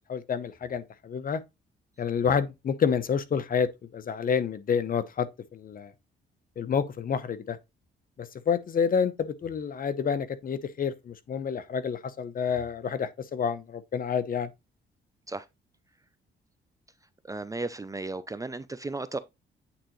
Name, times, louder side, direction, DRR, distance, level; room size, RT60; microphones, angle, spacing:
voice 1, 0.0-1.4 2.0-5.9 6.6-7.6 8.2-14.5, left 7 dB, 45° left, 0.8 m, -29 dB
voice 2, 17.2-19.2, right 3 dB, 15° right, 0.5 m, -34 dB
8.7 x 3.8 x 3.1 m
cardioid pair, 90°, 20 cm